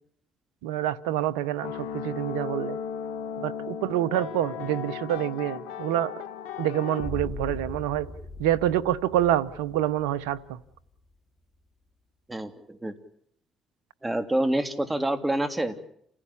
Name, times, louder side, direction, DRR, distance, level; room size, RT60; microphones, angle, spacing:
voice 1, 0.6-2.8 3.4-6.1 6.6-8.1 8.4-10.4, right 12 dB, 90° right, 17 dB, 0.9 m, -27 dB
sound 1, 1.6-7.1, left 8 dB, 85° left, 1.3 m, -36 dB
sound 2, 7.0-11.0, left 2 dB, 25° left, 6.0 m, -40 dB
voice 2, 12.3-12.9 14.0-15.8, right 1 dB, 15° right, 8 dB, 3.0 m, -27 dB
28.5 x 16.0 x 8.6 m, 0.71 s
supercardioid pair, 55°, 0 cm